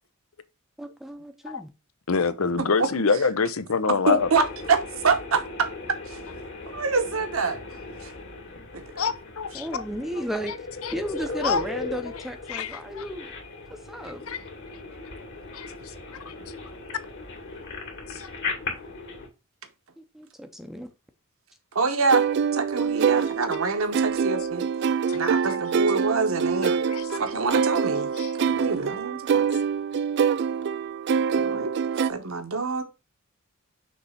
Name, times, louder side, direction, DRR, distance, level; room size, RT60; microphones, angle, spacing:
voice 1, 0.8-1.7 9.5-10.5 10.9-13.3 13.7-14.2 20.0-20.9, equal, ahead, 0.7 m, -34 dB
voice 2, 2.1-4.3 9.0-9.7 10.8-10.9 11.4-11.6 12.5-13.0 14.3-14.4 15.5-15.7 16.3-16.4 18.2-18.3 26.9-27.2 28.2-28.3, left 5 dB, 75° left, 0.8 m, -25 dB
voice 3, 2.6-2.9 4.1-5.7 6.1-6.2 6.7-7.6 8.0-8.1 8.7-9.0 21.7-22.2 22.5-24.6 25.1-26.8 27.1-28.1 28.4-29.5 31.3-32.8, right 4 dB, 70° right, 1.1 m, -26 dB
sound 1, 4.2-19.3, left 3 dB, 55° left, 2.3 m, -38 dB
sound 2, 22.1-32.1, right 6 dB, 55° right, 0.3 m, -25 dB
6.4 x 3.4 x 5.7 m
head